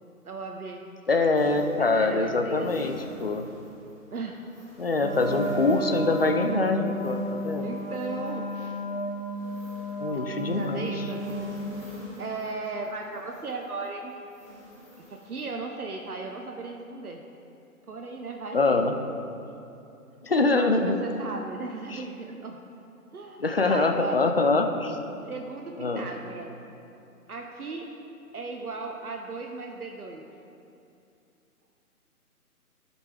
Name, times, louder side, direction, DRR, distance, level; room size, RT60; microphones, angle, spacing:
voice 1, 0.2-0.8 1.8-2.9 4.1-4.5 7.6-8.8 10.5-11.2 12.2-14.1 15.0-17.2 17.9-18.9 20.5-22.6 23.1-24.2 25.3-26.6 27.3-27.9 28.3-30.2, right 3 dB, 75° right, 2 dB, 0.8 m, -36 dB
voice 2, 1.1-3.5 4.8-7.7 10.0-11.0 18.5-18.9 20.2-21.0 21.9-22.0 23.4-25.0 25.8-26.1, left 3 dB, 40° left, 5 dB, 0.5 m, -24 dB
sound 1, 1.3-15.5, equal, 5° left, 1.3 m, -47 dB
Wind instrument woodwind instrument, 5.0-11.6, right 1 dB, 30° right, 2.0 m, -33 dB
14.0 x 5.2 x 3.3 m, 2.7 s
figure-of-eight pair, 145°, 46 cm